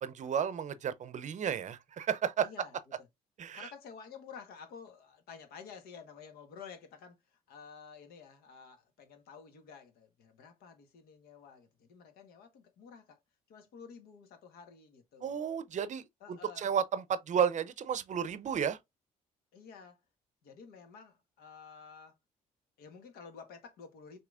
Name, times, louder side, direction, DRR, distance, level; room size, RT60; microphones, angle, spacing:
voice 1, 0.0-2.5 3.4-3.7 15.2-16.0 16.3-18.8, right 8 dB, 50° right, 0.6 m, -32 dB
voice 2, 2.4-2.7 3.5-13.2 13.5-15.3 16.2-16.7 19.5-20.0 20.4-22.2 22.8-24.2, left 6 dB, 75° left, 1.2 m, -51 dB
5.8 x 3.0 x 2.4 m
supercardioid pair, 60°, 16 cm